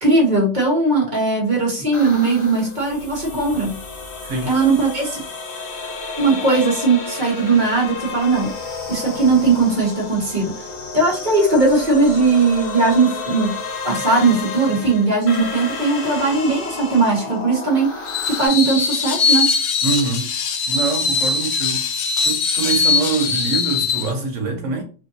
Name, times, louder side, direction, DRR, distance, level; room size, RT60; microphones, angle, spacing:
voice 1, 0.0-3.8 4.4-5.2 6.2-8.5 8.9-10.5 10.9-13.6 13.8-17.9 18.3-19.5, right 3 dB, 40° right, 1.5 m, -18 dB
sound 1, 1.9-18.5, left 3 dB, 50° left, 1.0 m, -31 dB
Screech, 18.1-24.1, left 5 dB, 75° left, 0.9 m, -21 dB
voice 2, 19.8-20.3 20.7-21.8 22.2-24.8, right 4 dB, 80° right, 1.4 m, -24 dB
5.0 x 2.6 x 2.7 m
omnidirectional pair, 1.3 m